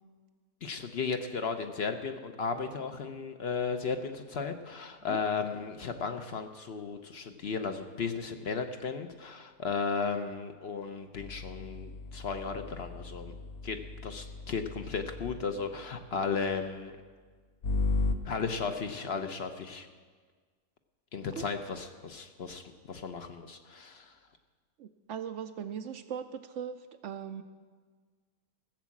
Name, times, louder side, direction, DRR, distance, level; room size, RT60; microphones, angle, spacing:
voice 1, 0.6-13.3 13.6-16.9 18.2-19.9 21.1-22.6 22.9-24.1, left 5 dB, 55° left, 7 dB, 0.8 m, -35 dB
sound 1, 11.2-15.5 17.6-18.2, left 3 dB, 85° left, 1.3 m, -35 dB
voice 2, 24.8-27.4, right 8 dB, 65° right, 10 dB, 0.8 m, -39 dB
15.0 x 7.3 x 7.2 m, 1.5 s
omnidirectional pair, 1.6 m